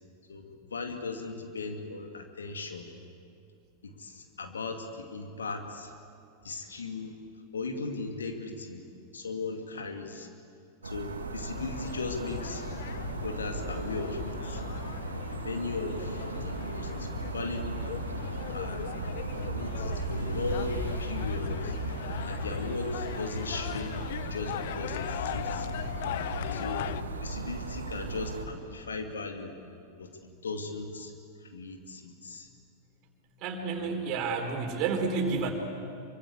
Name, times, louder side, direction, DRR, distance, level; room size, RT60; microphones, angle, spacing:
voice 1, 0.3-2.9 3.8-5.9 6.4-7.1 7.5-8.8 9.1-10.3 10.8-12.6 13.2-14.6 15.4-18.8 19.3-21.7 22.2-24.0 24.3-25.8 26.5-26.9 27.2-29.5 30.0-30.1 30.4-31.1 31.5-32.5 33.8-34.1, left 3 dB, 70° left, 4 dB, 2.4 m, -37 dB
sound 1, 10.8-28.5, right 3 dB, 75° right, 2.1 m, -36 dB
sound 2, 11.5-27.0, left 11 dB, 55° left, 0.8 m, -39 dB
voice 2, 33.4-35.5, right 4 dB, 40° right, 4 dB, 4.0 m, -30 dB
25.5 x 24.5 x 8.4 m, 2.5 s
figure-of-eight pair, 90°, 0 cm